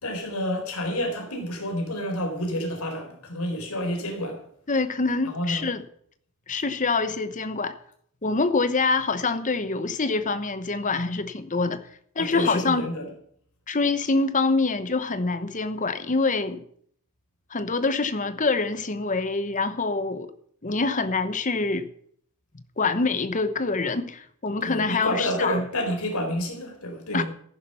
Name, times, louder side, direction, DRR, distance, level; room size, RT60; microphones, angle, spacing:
voice 1, 0.0-4.4 5.2-5.6 12.2-13.1 24.6-27.2, equal, 80° left, 4.3 m, -29 dB
voice 2, 4.7-5.9 6.5-7.7 8.2-11.9 12.1-12.9 13.7-16.6 17.5-20.3 20.6-21.9 22.8-25.6 27.1-27.2, left 3 dB, 35° left, 1.0 m, -25 dB
15.0 x 11.0 x 5.7 m
head